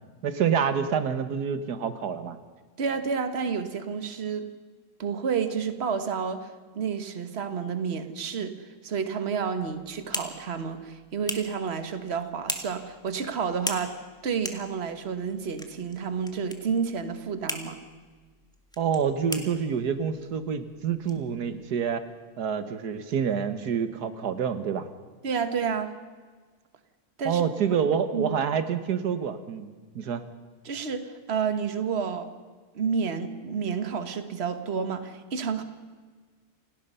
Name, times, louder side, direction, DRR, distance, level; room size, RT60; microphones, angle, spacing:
voice 1, 0.2-2.4 18.8-22.0 22.4-24.9 27.3-29.7 30.0-30.3, right 7 dB, 90° right, 10 dB, 1.8 m, -27 dB
voice 2, 2.8-4.5 5.0-6.5 6.7-13.9 14.2-17.8 25.2-25.9 27.2-27.4 27.7-27.8 28.1-28.3 30.6-32.3 32.7-35.6, right 6 dB, 45° right, 9 dB, 1.6 m, -30 dB
sound 1, 9.6-22.0, equal, 5° left, 1.7 m, -41 dB
28.0 x 18.5 x 5.6 m, 1.5 s
omnidirectional pair, 1.7 m